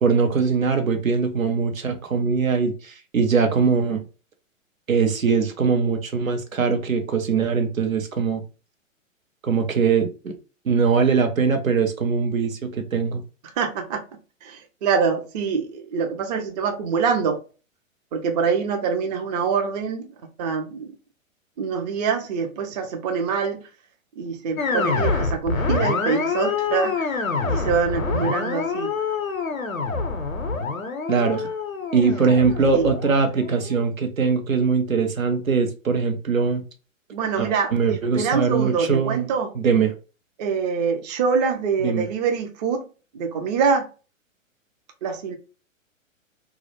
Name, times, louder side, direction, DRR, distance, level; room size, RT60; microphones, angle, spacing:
voice 1, 0.0-4.0 4.9-8.4 9.4-10.3 10.6-13.2 31.1-31.5 31.9-36.6 37.4-39.2 39.5-39.9 41.8-42.1, right 5 dB, 85° right, 0.7 m, -21 dB
voice 2, 13.6-14.0 14.4-17.4 18.1-20.1 20.4-20.9 21.6-23.6 24.2-28.9 32.7-32.9 37.1-39.5 40.4-42.8 43.1-43.9 45.0-45.4, right 6 dB, 35° right, 0.4 m, -25 dB
sound 1, 24.6-33.9, left 4 dB, 90° left, 0.6 m, -26 dB
2.3 x 2.1 x 2.9 m
figure-of-eight pair, 110°, 40 cm